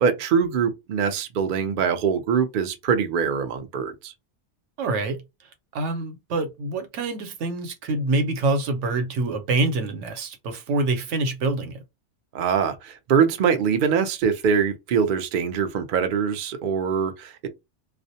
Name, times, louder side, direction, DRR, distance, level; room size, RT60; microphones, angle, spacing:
voice 1, 0.0-4.1 12.3-17.5, right 6 dB, 60° right, 0.5 m, -23 dB
voice 2, 4.8-5.2 5.7-11.8, right 2 dB, 75° right, 1.0 m, -26 dB
2.4 x 2.0 x 2.7 m
omnidirectional pair, 1.2 m